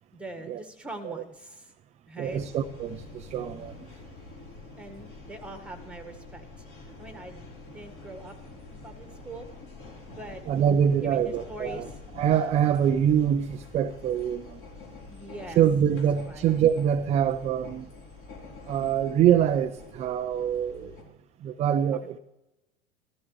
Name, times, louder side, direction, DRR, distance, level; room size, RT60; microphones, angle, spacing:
voice 1, 0.1-1.7 2.1-2.4 4.8-6.5 7.0-7.5 7.7-8.3 8.7-9.5 10.2-10.4 11.0-12.0 15.1-15.6 15.9-16.5 21.9-22.2, right 2 dB, 5° right, 1.6 m, -42 dB
voice 2, 2.2-3.7 10.5-11.9 12.2-14.6 15.6-17.9 18.7-20.9 21.4-22.2, right 9 dB, 20° right, 0.4 m, -24 dB
sound 1, 2.3-21.0, left 3 dB, 45° left, 4.0 m, -46 dB
15.0 x 13.5 x 3.2 m
figure-of-eight pair, 85°, 32 cm